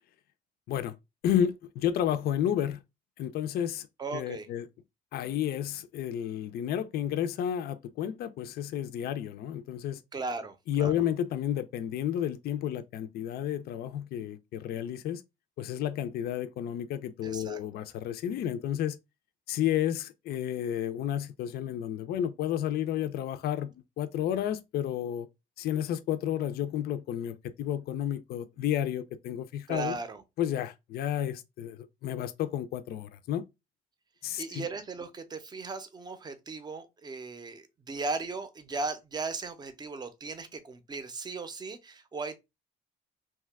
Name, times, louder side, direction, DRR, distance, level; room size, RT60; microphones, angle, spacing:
voice 1, 1.2-2.8 3.2-3.9 4.1-4.7 5.1-10.0 10.7-15.2 15.6-19.0 19.5-25.3 25.6-30.0 30.4-33.4 34.2-34.7, left 10 dB, 60° left, 0.4 m, -31 dB
voice 2, 4.0-4.5 10.1-10.9 17.2-17.6 29.7-30.2 34.4-42.4, right 3 dB, 25° right, 0.5 m, -37 dB
2.9 x 2.2 x 3.4 m
cardioid pair, 105°, 18 cm